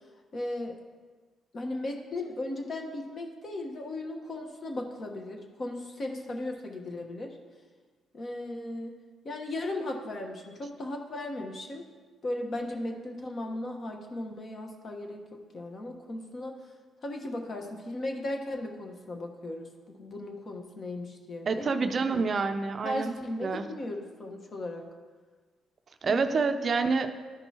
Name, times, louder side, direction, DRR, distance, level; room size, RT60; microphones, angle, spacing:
voice 1, 0.3-0.8 1.5-7.4 8.1-8.9 9.2-11.8 12.2-16.5 17.0-22.2 22.8-24.9 26.0-26.5, left 1 dB, 45° left, 3 dB, 1.2 m, -36 dB
voice 2, 21.5-23.1 23.4-23.6 26.0-27.1, right 4 dB, 45° right, 8 dB, 0.5 m, -27 dB
12.5 x 5.3 x 2.9 m, 1.4 s
cardioid pair, 90°, 0 cm